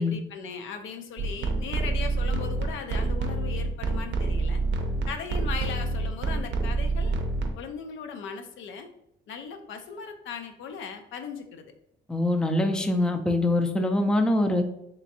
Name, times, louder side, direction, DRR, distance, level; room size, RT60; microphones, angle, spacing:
voice 1, 0.0-4.6 5.1-7.1 7.6-8.9 9.3-11.6, left 6 dB, 75° left, 6 dB, 0.5 m, -38 dB
sound 1, 1.2-7.5, right 3 dB, 65° right, 0.5 m, -27 dB
voice 2, 12.1-14.6, left 1 dB, 5° left, 5 dB, 0.4 m, -24 dB
3.3 x 3.0 x 2.7 m, 0.80 s
cardioid pair, 90°, 20 cm